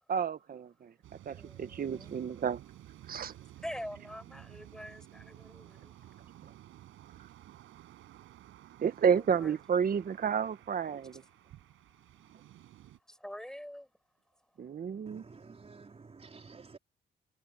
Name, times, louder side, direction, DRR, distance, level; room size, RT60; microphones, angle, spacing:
voice 1, 0.1-0.9 1.2-2.6 3.1-3.3 8.8-11.2 14.6-15.2, right 7 dB, 45° right, 1.4 m, -31 dB
sound 1, 1.0-13.0, right 13 dB, 85° right, 6.0 m, -54 dB
voice 2, 1.3-2.2 3.3-6.2 9.1-9.6 11.1-11.2 13.1-13.9, equal, 5° left, 6.7 m, -45 dB
voice 3, 15.1-16.8, right 4 dB, 30° right, 4.2 m, -51 dB
cardioid pair, 90°, 20 cm